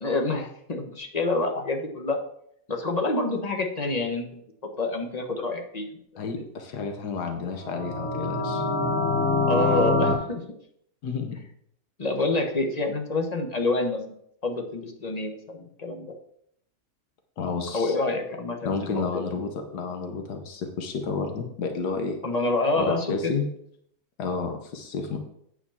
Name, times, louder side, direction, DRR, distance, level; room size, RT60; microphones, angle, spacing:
voice 1, 0.0-2.2 2.7-4.4 4.8-5.9 9.5-10.4 12.0-14.0 14.4-16.1 17.7-19.2 22.2-23.3, left 2 dB, 25° left, 3 dB, 1.2 m, -27 dB
voice 2, 6.2-8.6 11.0-11.4 17.4-18.0 18.6-22.2 22.8-23.5 24.2-25.2, left 4 dB, 80° left, 5 dB, 1.6 m, -31 dB
sound 1, 7.6-10.1, left 2 dB, 10° left, 1.9 m, -24 dB
8.6 x 4.9 x 7.1 m, 0.69 s
omnidirectional pair, 1.7 m